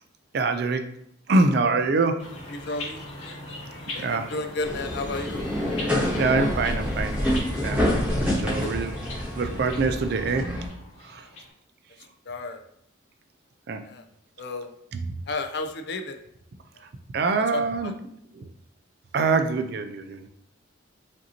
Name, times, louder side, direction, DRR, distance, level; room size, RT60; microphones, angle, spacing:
voice 1, 0.3-0.8 1.3-2.2 4.0-4.3 6.2-7.2 7.6-7.8 8.3-8.9 9.4-10.5 11.0-11.3 13.7-13.8 17.1-17.9 18.4-18.5 19.1-20.3, right 3 dB, 50° right, 8 dB, 0.3 m, -24 dB
sound 1, 2.2-11.5, left 1 dB, 90° left, 1.6 m, -40 dB
voice 2, 2.5-3.1 3.9-5.5 8.6-8.7 12.3-12.6 13.8-14.1 14.4-14.7 15.3-16.2 16.8-16.9 17.5-17.9, left 2 dB, 55° left, 6 dB, 0.4 m, -32 dB
sound 2, 4.6-10.7, left 1 dB, 5° right, 0.9 m, -27 dB
5.1 x 2.7 x 2.8 m, 0.72 s
head